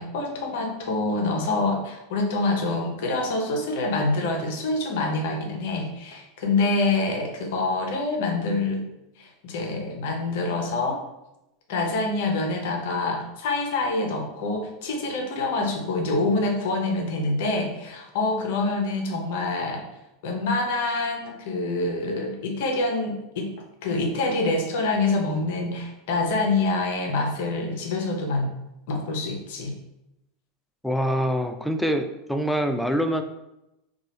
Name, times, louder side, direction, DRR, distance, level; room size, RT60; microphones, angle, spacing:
voice 1, 0.0-8.8 9.2-11.0 11.7-19.9 20.2-23.5 23.8-28.5 28.9-29.7, left 2 dB, 65° left, 2 dB, 0.6 m, -26 dB
voice 2, 30.8-33.2, equal, ahead, 6 dB, 0.3 m, -25 dB
2.9 x 2.3 x 2.8 m, 0.89 s
hypercardioid pair, 90°, 0 cm